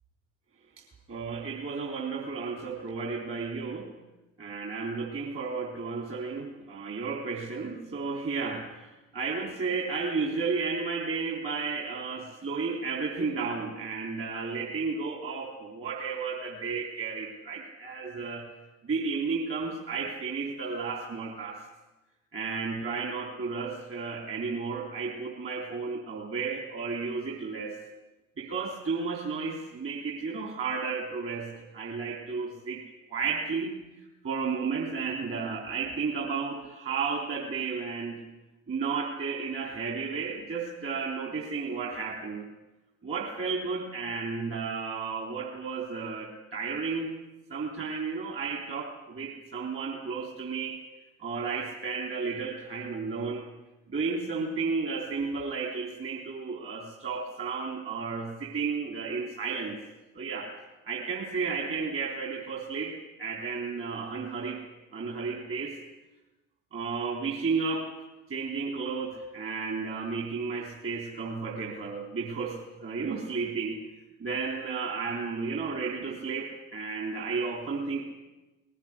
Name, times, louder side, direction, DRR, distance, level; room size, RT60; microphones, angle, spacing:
voice 1, 0.8-3.9 4.4-18.5 18.8-21.6 22.3-27.8 28.4-32.8 33.1-33.8 34.2-38.3 38.7-42.5 43.0-47.1 47.5-50.8 51.2-53.5 53.9-59.8 60.1-60.5 60.8-64.6 64.9-65.8 66.7-67.9 68.3-73.8 74.2-78.0, right 4 dB, 35° right, 0 dB, 3.9 m, -33 dB
20.0 x 17.0 x 9.9 m, 1.0 s
figure-of-eight pair, 70°, 37 cm